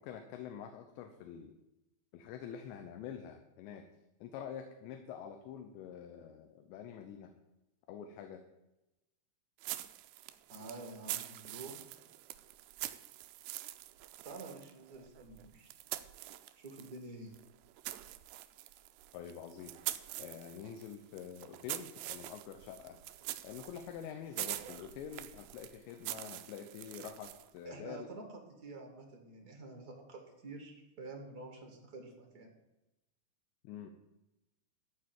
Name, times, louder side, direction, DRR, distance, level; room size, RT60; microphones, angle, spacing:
voice 1, 0.0-1.5 2.1-3.8 4.2-7.3 7.9-8.4 19.1-19.8 20.2-23.0 23.4-28.1 33.6-33.9, left 8 dB, 85° left, 6 dB, 3.2 m, -46 dB
sound 1, 9.6-17.0 17.3-27.6, right 16 dB, 85° right, 2.5 m, -45 dB
voice 2, 10.5-11.9 14.2-15.7 16.6-17.3 24.8-24.9 27.6-32.5, right 3 dB, 65° right, 3 dB, 0.9 m, -49 dB
14.0 x 4.9 x 9.0 m, 0.95 s
omnidirectional pair, 5.1 m